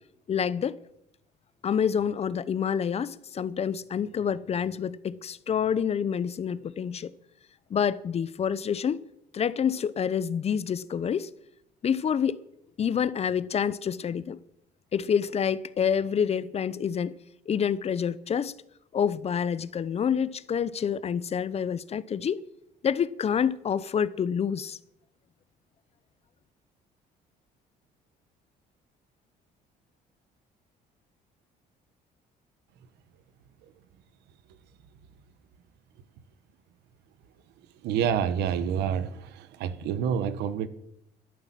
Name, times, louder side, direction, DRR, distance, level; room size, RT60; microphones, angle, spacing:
voice 1, 0.3-0.8 1.6-7.1 7.7-9.0 9.3-11.3 11.8-12.4 12.8-14.4 14.9-17.1 17.5-18.5 18.9-22.4 22.8-24.8, left 7 dB, 40° left, 0.7 m, -27 dB
voice 2, 37.8-40.7, right 8 dB, 85° right, 1.2 m, -28 dB
12.5 x 11.5 x 7.6 m
cardioid pair, 110°, 17 cm